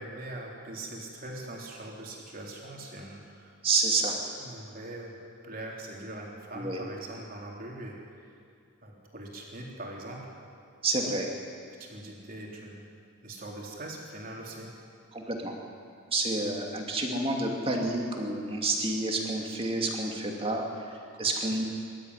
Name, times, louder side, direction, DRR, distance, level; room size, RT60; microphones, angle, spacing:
voice 1, 0.0-3.5 4.4-5.2 5.4-8.3 8.8-10.2 11.8-12.8 13.2-14.7 21.1-21.3, right 1 dB, 40° right, -2 dB, 3.7 m, -42 dB
voice 2, 3.6-4.1 6.5-6.8 10.8-11.3 15.1-15.5 16.1-21.6, right 2 dB, 25° right, 1 dB, 2.5 m, -29 dB
22.5 x 13.0 x 9.8 m, 2.4 s
head